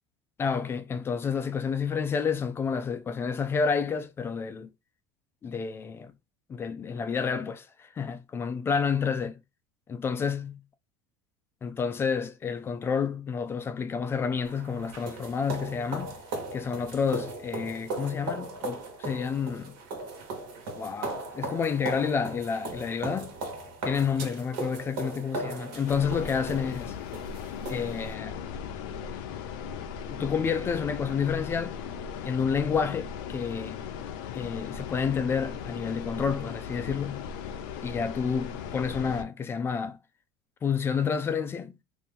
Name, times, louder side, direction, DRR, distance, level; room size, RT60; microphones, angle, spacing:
voice 1, 0.4-4.7 5.4-6.1 6.5-9.4 9.9-10.5 11.6-16.2 16.5-19.8 20.8-23.4 23.8-27.0 27.7-28.4 30.1-31.8 32.2-33.8 34.3-37.3 37.8-40.0 40.6-41.7, left 6 dB, 20° left, 0.3 m, -29 dB
sound 1, 14.4-28.1, right 2 dB, 70° right, 1.3 m, -38 dB
sound 2, 25.8-39.2, left 7 dB, 75° left, 0.6 m, -37 dB
2.8 x 2.6 x 3.6 m
supercardioid pair, 135°, 11 cm